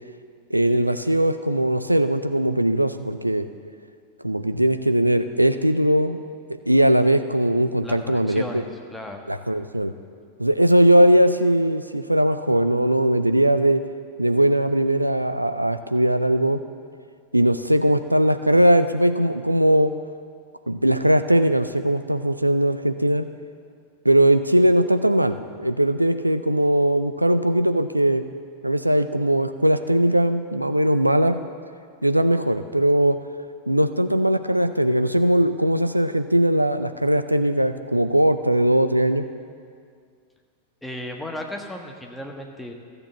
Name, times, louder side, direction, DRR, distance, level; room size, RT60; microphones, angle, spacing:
voice 1, 0.5-3.5 4.2-6.2 6.7-8.6 9.3-9.9 10.4-13.8 14.2-16.6 17.3-19.9 20.7-23.3 24.0-28.2 28.6-31.4 32.0-33.2 33.7-39.3, right 1 dB, 85° right, 10 dB, 0.5 m, -20 dB
voice 2, 7.8-8.6 8.9-9.2 40.8-42.7, left 1 dB, 5° left, 1 dB, 1.4 m, -35 dB
13.5 x 6.8 x 7.1 m, 2.2 s
figure-of-eight pair, 90°, 0 cm